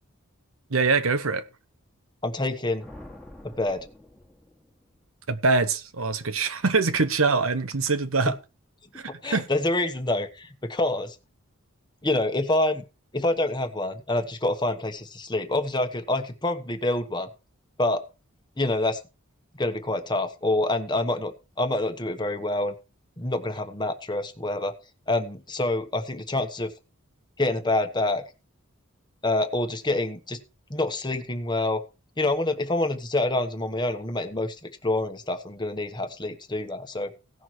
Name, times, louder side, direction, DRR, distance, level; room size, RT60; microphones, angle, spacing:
voice 1, 0.7-1.5 5.3-8.4 8.9-9.5, right 4 dB, 80° right, 1.1 m, -24 dB
voice 2, 2.2-2.8 3.4-3.9 8.9-11.1 12.0-12.8 13.1-17.3 17.8-18.0 18.6-19.0 19.6-22.7 23.2-24.7 25.1-26.7 27.4-28.2 29.2-30.4 30.7-31.8 32.2-37.1, left 2 dB, 20° left, 1.2 m, -27 dB
sound 1, 2.8-5.1, left 1 dB, 5° left, 1.7 m, -47 dB
17.0 x 6.1 x 4.6 m
head